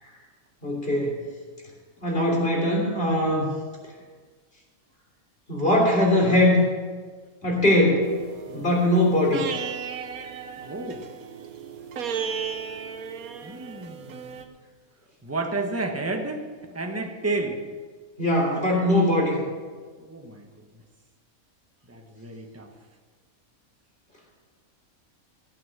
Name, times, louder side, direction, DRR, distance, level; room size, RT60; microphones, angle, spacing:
voice 1, 0.6-1.2 2.0-3.5 5.5-6.6 7.4-8.1 8.5-9.5 18.2-19.3, left 1 dB, 40° left, -2 dB, 3.5 m, -21 dB
sound 1, 8.0-14.4, right 7 dB, 90° right, 1.4 m, -35 dB
voice 2, 10.6-11.0 13.4-14.4 15.2-17.6 18.5-19.1 20.0-20.7 21.9-22.7, right 2 dB, 10° right, 4 dB, 1.1 m, -32 dB
15.0 x 8.8 x 6.6 m, 1.5 s
omnidirectional pair, 1.5 m